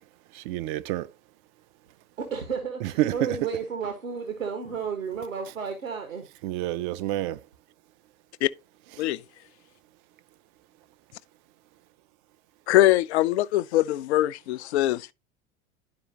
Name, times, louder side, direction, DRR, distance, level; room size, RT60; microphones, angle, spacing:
voice 1, 0.3-1.1 2.8-3.4 6.4-7.4, right 14 dB, 40° right, 0.5 m, -28 dB
voice 2, 2.2-6.3, right 6 dB, 75° right, 1.4 m, -32 dB
voice 3, 12.7-15.1, left 15 dB, 55° left, 0.5 m, -22 dB
11.5 x 4.8 x 2.9 m
figure-of-eight pair, 80°, 40 cm